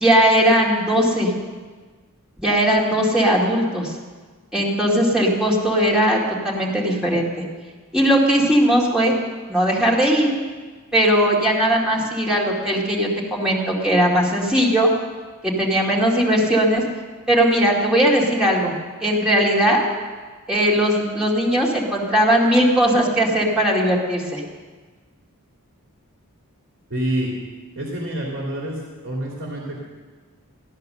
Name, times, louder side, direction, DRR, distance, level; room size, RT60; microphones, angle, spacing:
voice 1, 0.0-1.3 2.4-3.9 4.5-6.2 6.4-7.3 7.9-9.2 9.5-10.3 10.9-14.9 15.4-16.8 17.3-18.7 19.0-19.8 20.5-24.4, equal, 5° right, -4 dB, 2.3 m, -18 dB
voice 2, 26.9-27.3 27.7-29.8, right 1 dB, 60° right, -3 dB, 3.0 m, -27 dB
16.0 x 10.5 x 6.6 m, 1.4 s
head